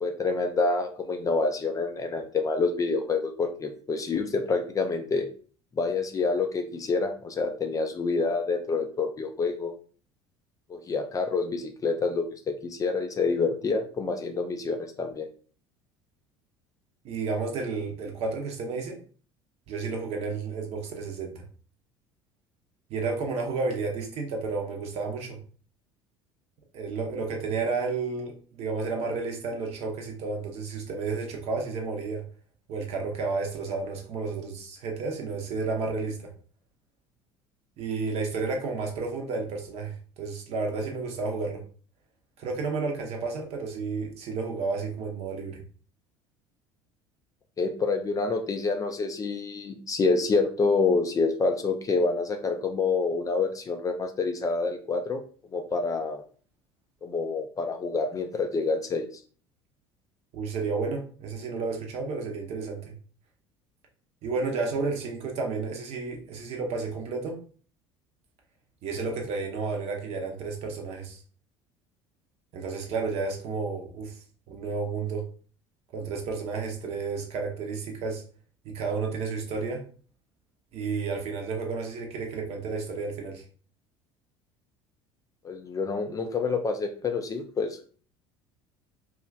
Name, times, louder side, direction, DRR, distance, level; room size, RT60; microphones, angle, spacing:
voice 1, 0.0-5.3 5.8-9.7 10.7-15.3 47.6-55.2 55.5-56.2 57.0-59.1 85.4-87.9, left 4 dB, 25° left, 5 dB, 0.4 m, -27 dB
voice 2, 17.0-19.0 19.7-21.4 22.9-25.4 26.7-32.2 32.7-36.3 37.8-41.6 42.4-45.6 60.3-62.9 64.2-67.4 68.8-71.2 72.5-74.2 74.5-75.2 75.9-78.2 78.6-79.8 80.7-83.4, right 4 dB, 45° right, 2 dB, 0.7 m, -31 dB
2.9 x 2.3 x 2.3 m, 0.41 s
figure-of-eight pair, 65°, 14 cm